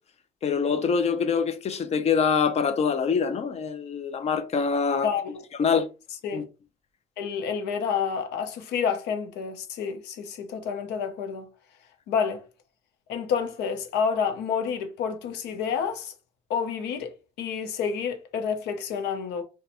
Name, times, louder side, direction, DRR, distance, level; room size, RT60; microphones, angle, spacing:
voice 1, 0.4-5.1 5.6-5.9 6.3-6.4, left 6 dB, 40° left, 0.6 m, -24 dB
voice 2, 5.0-5.4 6.2-6.4 7.2-11.5 12.1-12.4 13.1-16.1 16.5-19.4, left 6 dB, 85° left, 0.8 m, -29 dB
2.6 x 2.3 x 4.1 m
cardioid pair, 110°, 17 cm